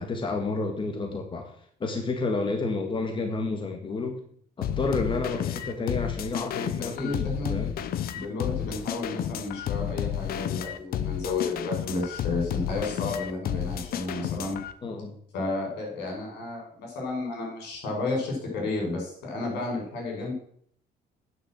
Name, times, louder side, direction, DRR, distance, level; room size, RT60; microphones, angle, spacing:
voice 1, 0.0-4.2 4.6-7.2 7.5-7.7 14.8-15.1, left 3 dB, 30° left, 4 dB, 1.7 m, -30 dB
sound 1, 4.6-14.7, left 10 dB, 60° left, 0.9 m, -31 dB
voice 2, 6.9-7.6 8.1-14.6 15.3-20.3, left 3 dB, 85° left, 0 dB, 6.0 m, -32 dB
9.5 x 6.4 x 7.8 m, 0.62 s
cardioid pair, 110°, 17 cm